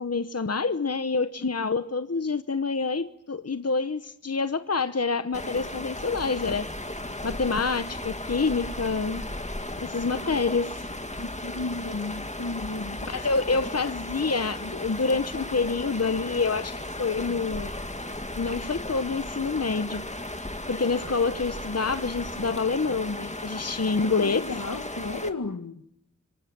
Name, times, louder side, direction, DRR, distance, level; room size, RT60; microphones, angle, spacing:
voice 1, 0.0-6.7 7.2-9.3 9.8-10.9 13.1-17.7 18.4-20.1 20.7-24.4, left 4 dB, 55° left, 1.0 m, -27 dB
voice 2, 1.4-1.8 11.2-13.2 23.8-25.8, left 3 dB, 80° left, 1.5 m, -34 dB
sound 1, 5.3-25.3, left 1 dB, 25° left, 2.1 m, -36 dB
25.5 x 25.0 x 8.7 m
wide cardioid pair, 50°, 30 cm